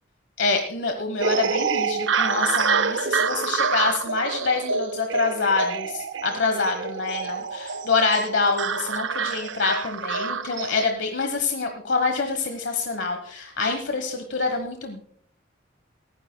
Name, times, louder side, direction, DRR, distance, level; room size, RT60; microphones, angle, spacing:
voice 1, 0.4-15.0, left 4 dB, 75° left, 5 dB, 1.2 m, -26 dB
sound 1, 1.2-10.9, right 5 dB, 75° right, 0.5 m, -27 dB
28.0 x 9.9 x 2.2 m, 0.63 s
head